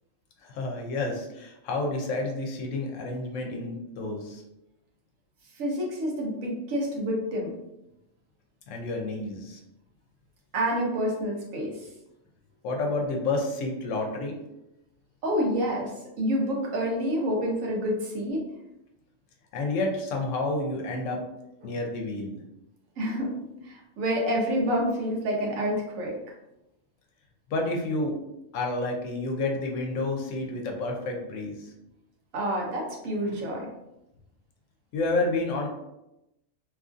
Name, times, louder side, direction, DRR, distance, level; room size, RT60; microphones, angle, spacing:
voice 1, 0.4-4.4 8.7-9.6 12.6-14.3 19.5-21.2 21.6-22.3 27.5-28.1 28.5-31.7 34.9-35.7, left 2 dB, 75° left, 1 dB, 0.9 m, -30 dB
voice 2, 5.6-7.5 10.5-11.9 15.2-18.5 21.6-21.7 23.0-23.4 23.6-26.1 32.3-33.7, equal, 85° right, -1 dB, 1.1 m, -28 dB
2.9 x 2.5 x 2.4 m, 0.89 s
omnidirectional pair, 1.3 m